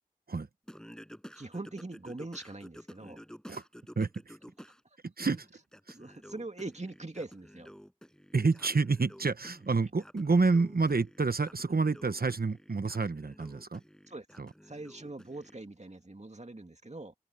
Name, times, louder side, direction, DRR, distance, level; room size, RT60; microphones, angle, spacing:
Singing, 0.7-4.8 5.2-15.6, equal, 5° left, 6.3 m, -52 dB
voice 1, 1.3-3.2 5.9-7.7 14.1-14.3 14.6-17.1, right 2 dB, 50° right, 2.2 m, -42 dB
voice 2, 4.0-4.3 5.0-5.5 5.9-6.0 8.3-13.8 14.4-14.5, right 4 dB, 85° right, 0.9 m, -28 dB
wide cardioid pair, 45°, 15 cm